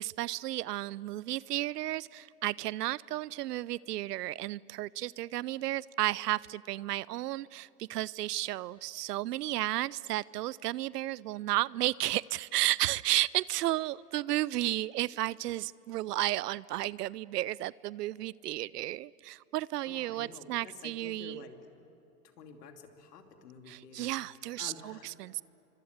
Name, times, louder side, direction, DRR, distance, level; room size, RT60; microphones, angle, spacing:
voice 1, 0.0-21.4 23.7-25.4, right 16 dB, 85° right, 22 dB, 0.6 m, -33 dB
voice 2, 19.8-21.6 22.2-24.1 24.6-25.2, left 5 dB, 80° left, 4 dB, 2.9 m, -50 dB
27.0 x 24.5 x 8.1 m, 2.8 s
hypercardioid pair, 135°, 46 cm